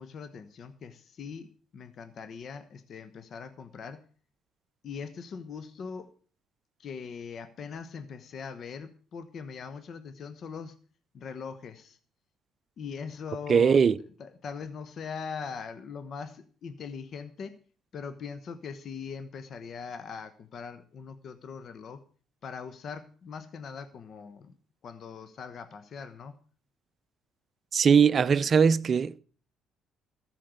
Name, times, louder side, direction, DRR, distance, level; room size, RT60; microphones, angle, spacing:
voice 1, 0.0-4.0 4.8-6.1 6.8-10.8 11.1-12.0 12.8-13.8 14.2-17.6 17.9-22.0 22.4-24.5 24.8-26.3, left 6 dB, 55° left, 1.1 m, -41 dB
voice 2, 13.5-14.0 27.7-29.1, right 6 dB, 45° right, 0.6 m, -20 dB
14.0 x 6.5 x 8.0 m
supercardioid pair, 85°, 0 cm